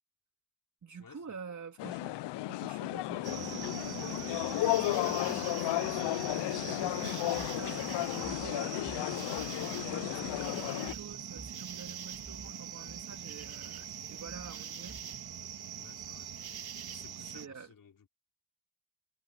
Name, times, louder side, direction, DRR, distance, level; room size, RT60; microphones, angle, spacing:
voice 1, 0.8-9.0 9.9-15.0 17.2-17.7, right 6 dB, 45° right, 3.2 m, -48 dB
sound 1, 1.8-10.9, left 17 dB, 90° left, 0.5 m, -33 dB
sound 2, 3.2-17.5, right 8 dB, 65° right, 2.5 m, -43 dB
sound 3, 7.4-15.4, right 3 dB, 20° right, 2.6 m, -52 dB
voice 2, 15.8-16.3 16.9-18.1, left 6 dB, 55° left, 4.7 m, -56 dB
cardioid pair, 80°, 40 cm